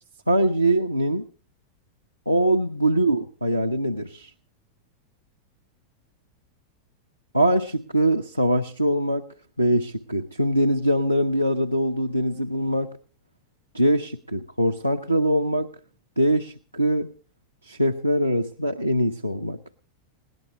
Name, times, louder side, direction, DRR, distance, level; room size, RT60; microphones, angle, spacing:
voice 1, 0.3-1.3 2.3-4.3 7.3-9.3 9.6-13.0 13.7-15.7 16.2-17.1 17.6-19.6, right 1 dB, 90° right, 3 dB, 0.7 m, -23 dB
21.0 x 17.5 x 3.2 m, 0.37 s
figure-of-eight pair, 90°, 0 cm